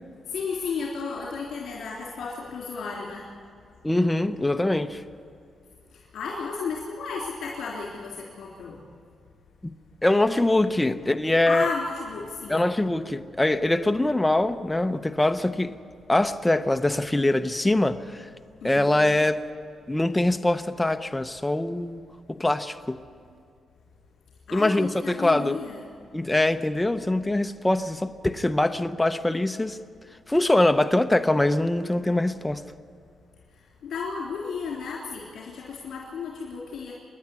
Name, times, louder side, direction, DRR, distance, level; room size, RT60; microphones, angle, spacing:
voice 1, 0.3-3.2 5.9-8.8 11.5-12.6 18.6-18.9 24.5-25.8 33.8-36.9, left 5 dB, 75° left, 3.5 m, -33 dB
voice 2, 3.8-5.0 9.6-9.7 10.0-11.7 12.5-15.7 16.1-18.3 18.6-19.4 19.9-22.0 22.3-23.0 24.5-25.7 26.1-29.8 30.3-32.6, left 1 dB, 10° left, 0.7 m, -23 dB
26.5 x 10.5 x 9.8 m
cardioid pair, 125°, 0 cm